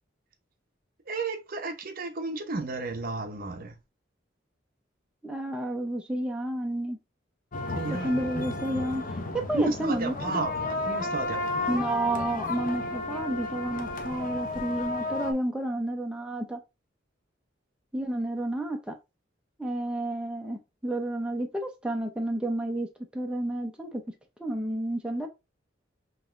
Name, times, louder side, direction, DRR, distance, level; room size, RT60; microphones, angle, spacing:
voice 1, 1.1-3.8 7.7-8.3 9.5-11.9, right 3 dB, 50° right, 0.7 m, -33 dB
voice 2, 5.2-7.0 7.9-9.1 9.3-10.1 11.7-16.6 17.9-18.9 19.6-24.0 24.4-25.3, right 1 dB, 5° right, 0.5 m, -31 dB
sound 1, 7.5-15.3, left 2 dB, 45° left, 0.7 m, -33 dB
5.2 x 2.9 x 2.4 m
head